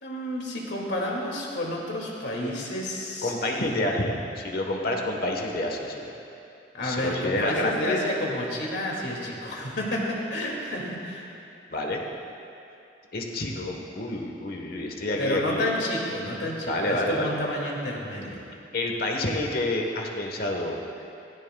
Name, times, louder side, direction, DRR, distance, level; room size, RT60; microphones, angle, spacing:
voice 1, 0.0-3.8 6.7-11.2 15.2-18.4, left 1 dB, 70° left, -2 dB, 2.2 m, -30 dB
voice 2, 3.2-6.1 6.8-8.0 11.7-12.0 13.1-15.7 16.7-17.4 18.7-20.8, left 1 dB, 55° left, 1 dB, 1.2 m, -28 dB
17.0 x 14.5 x 2.3 m, 2.7 s
head